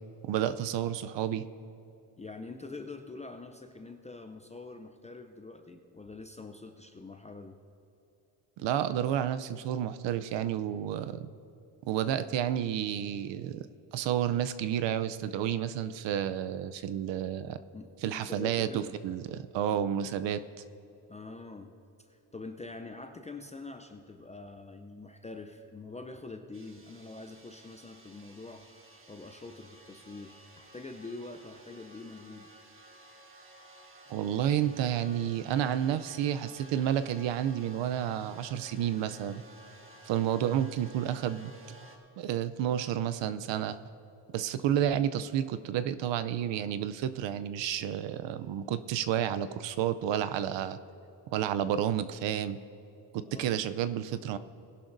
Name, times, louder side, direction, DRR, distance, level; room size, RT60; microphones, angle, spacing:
voice 1, 0.2-1.5 8.6-11.3 11.8-13.7 13.9-17.6 18.0-20.4 34.1-39.4 40.0-41.5 42.2-43.8 44.3-50.8 51.3-52.6 53.1-54.4, right 10 dB, 80° right, 12 dB, 0.7 m, -30 dB
voice 2, 2.2-7.6 17.7-19.0 21.1-21.7 22.1-28.6 29.1-32.5 53.3-53.7, left 3 dB, 15° left, 5 dB, 0.5 m, -45 dB
sound 1, 26.5-42.0, right 1 dB, 30° right, 1.4 m, -54 dB
20.0 x 11.0 x 2.6 m, 2.9 s
cardioid pair, 115°, 44 cm